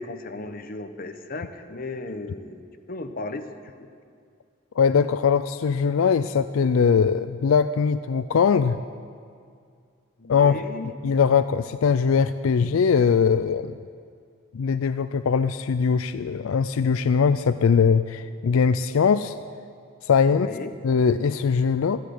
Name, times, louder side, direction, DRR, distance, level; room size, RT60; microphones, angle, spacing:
voice 1, 0.0-3.5 3.8-3.9 10.2-10.9 20.3-20.7, left 2 dB, 45° left, 7 dB, 1.0 m, -35 dB
voice 2, 4.8-8.8 10.3-10.6 11.0-13.7 14.5-19.3 20.1-20.5 20.8-22.0, left 6 dB, 80° left, 12 dB, 0.4 m, -21 dB
13.5 x 10.5 x 9.5 m, 2.2 s
head